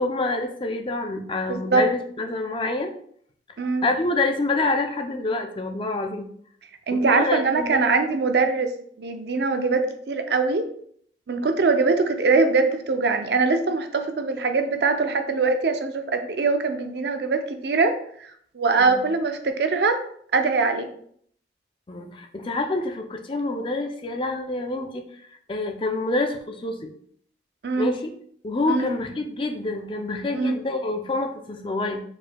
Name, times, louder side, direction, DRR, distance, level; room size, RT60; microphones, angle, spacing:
voice 1, 0.0-2.9 3.8-6.3 6.9-7.9 18.8-19.0 21.9-25.0 25.3-26.9 27.8-28.1 28.4-32.0, left 2 dB, 30° left, 4 dB, 0.4 m, -27 dB
voice 2, 1.5-1.8 3.6-3.8 6.9-8.7 9.0-10.7 11.3-17.9 18.5-20.0 20.3-20.9 27.6-27.9 28.7-28.9 30.3-30.6, right 4 dB, 65° right, 7 dB, 0.5 m, -22 dB
4.8 x 4.4 x 2.2 m, 0.63 s
head